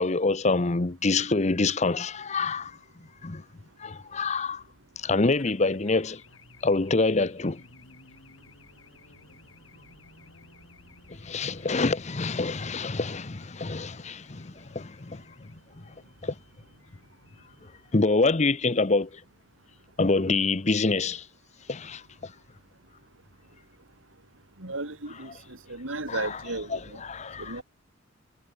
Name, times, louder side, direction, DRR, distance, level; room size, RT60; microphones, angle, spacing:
voice 1, 0.0-2.7 3.2-3.4 3.8-4.6 5.0-6.2 6.6-7.6 11.2-15.2 16.2-16.3 17.9-19.1 20.0-21.2 21.7-22.3 26.1-26.2 27.1-27.5, left 3 dB, 35° left, 0.8 m, -26 dB
Race car auto racing / Alarm, 5.2-22.1, left 3 dB, 85° left, 7.1 m, -56 dB
voice 2, 24.6-27.0 27.4-27.6, right 2 dB, 80° right, 4.0 m, -35 dB
head